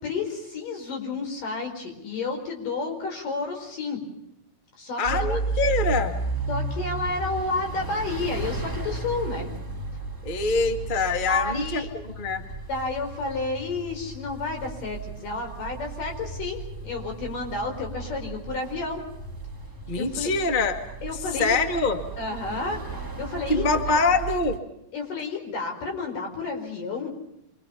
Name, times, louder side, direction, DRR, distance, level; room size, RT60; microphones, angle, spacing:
voice 1, 0.0-4.0 4.8-5.4 6.5-9.5 11.3-11.9 12.7-19.0 19.9-20.3 21.0-21.6 22.2-22.8 23.2-24.0 24.9-27.1, left 3 dB, 55° left, 3 dB, 6.4 m, -31 dB
voice 2, 5.0-6.1 10.2-12.4 19.9-20.8 21.4-22.0 23.5-24.6, left 3 dB, 80° left, 6 dB, 0.4 m, -24 dB
sound 1, 5.0-24.6, right 4 dB, 25° right, 0.4 m, -34 dB
27.0 x 24.5 x 5.8 m, 0.81 s
omnidirectional pair, 4.6 m